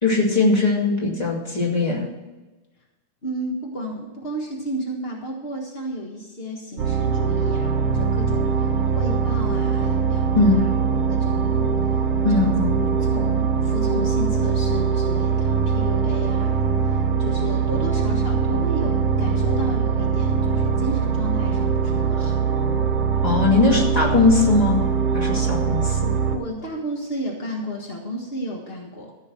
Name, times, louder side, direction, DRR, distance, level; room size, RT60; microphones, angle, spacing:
voice 1, 0.0-2.0 10.3-10.6 12.2-12.8 23.2-24.8 25.1-26.1, left 3 dB, 15° left, -3 dB, 2.0 m, -20 dB
voice 2, 3.2-10.7 11.1-12.6 13.0-22.3 26.3-29.1, equal, 55° left, -1 dB, 0.6 m, -32 dB
sound 1, 6.8-26.4, right 6 dB, 60° right, 1.8 m, -22 dB
14.5 x 5.6 x 7.5 m, 1.1 s
omnidirectional pair, 3.7 m